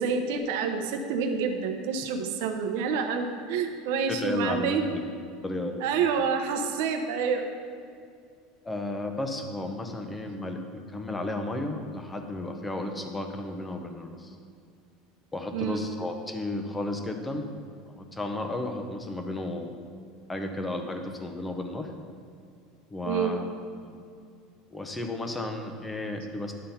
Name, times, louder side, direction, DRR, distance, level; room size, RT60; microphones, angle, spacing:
voice 1, 0.0-5.0 5.8-7.5 15.5-15.8 23.0-23.4, right 6 dB, 75° right, 5 dB, 0.7 m, -28 dB
voice 2, 4.1-5.0 5.4-5.8 8.6-14.3 15.3-17.5 17.9-19.7 20.3-21.9 22.9-23.5 23.8-23.9 24.7-26.5, left 2 dB, 10° left, 5 dB, 0.8 m, -33 dB
10.5 x 3.8 x 5.6 m, 2.3 s
supercardioid pair, 135°, 0 cm